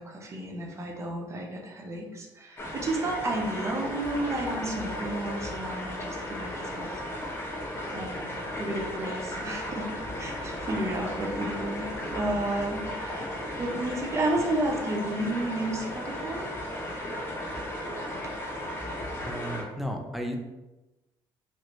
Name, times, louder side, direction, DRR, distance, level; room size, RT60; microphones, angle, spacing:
voice 1, 0.0-6.9 7.9-8.3 8.6-9.9 10.2-16.5 18.2-18.3, right 1 dB, 30° right, 0 dB, 0.7 m, -32 dB
sound 1, 2.6-19.6, left 1 dB, 25° left, 0.9 m, -35 dB
voice 2, 19.2-20.4, equal, ahead, 2 dB, 0.5 m, -34 dB
3.1 x 2.5 x 3.0 m, 1.0 s
cardioid pair, 95°, 9 cm